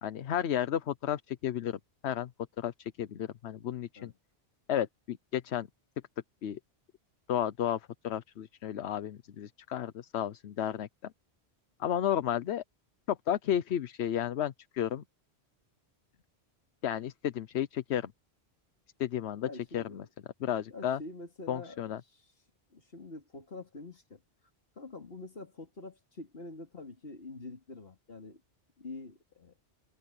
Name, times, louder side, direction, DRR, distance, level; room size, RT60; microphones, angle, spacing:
voice 1, 0.0-2.3 2.6-4.1 4.7-5.7 6.4-6.6 7.3-11.1 11.8-12.6 13.1-15.0 16.8-18.1 19.0-19.5 19.7-20.0 20.4-21.0 21.5-22.0, left 10 dB, 80° left, 1.0 m, -33 dB
voice 2, 19.4-20.1 20.7-21.8 22.1-22.2 22.7-24.2 24.8-28.4 28.8-29.5, left 2 dB, 65° left, 3.0 m, -46 dB
omnidirectional pair, 1.1 m